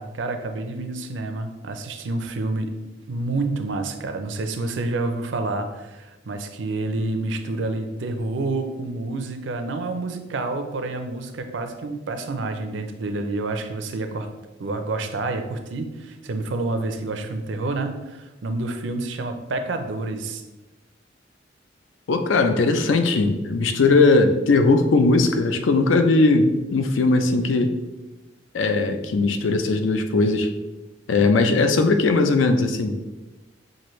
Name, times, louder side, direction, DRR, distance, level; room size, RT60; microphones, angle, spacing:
voice 1, 0.0-2.7 3.1-14.3 14.6-20.4, right 2 dB, 70° right, 7 dB, 0.5 m, -28 dB
voice 2, 22.1-27.7 28.5-30.5 31.1-33.0, left 3 dB, 90° left, 7 dB, 0.5 m, -19 dB
5.9 x 2.5 x 3.1 m, 1.1 s
head